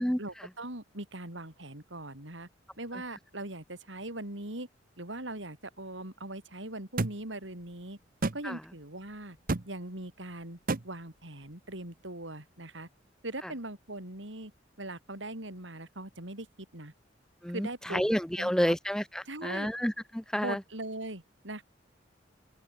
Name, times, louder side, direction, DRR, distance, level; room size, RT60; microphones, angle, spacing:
voice 1, 0.2-2.5 2.8-4.7 5.0-8.0 8.3-9.4 9.6-10.6 10.8-12.9 13.2-14.5 14.8-16.5 16.7-16.9 17.5-18.0 18.4-18.7 19.3-19.7 20.4-21.6, right 1 dB, 85° right, 6.8 m, -40 dB
sound 1, 7.0-7.2 8.2-8.4 9.5-9.7 10.7-10.8, right 2 dB, 50° right, 1.0 m, -29 dB
voice 2, 17.4-20.6, equal, 5° left, 0.8 m, -30 dB
open air
head